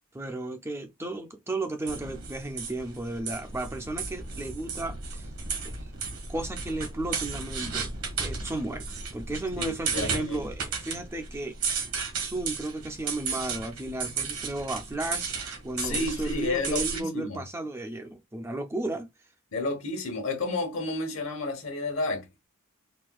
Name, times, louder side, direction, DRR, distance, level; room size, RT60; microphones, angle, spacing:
voice 1, 0.1-5.3 5.6-5.9 6.3-7.9 8.2-11.7 12.2-15.4 15.6-19.1, right 2 dB, 10° right, 0.3 m, -34 dB
sound 1, 1.9-17.0, right 5 dB, 75° right, 1.4 m, -34 dB
voice 2, 9.6-10.5 15.8-17.4 19.5-22.5, left 3 dB, 65° left, 1.1 m, -31 dB
4.2 x 2.2 x 2.3 m
head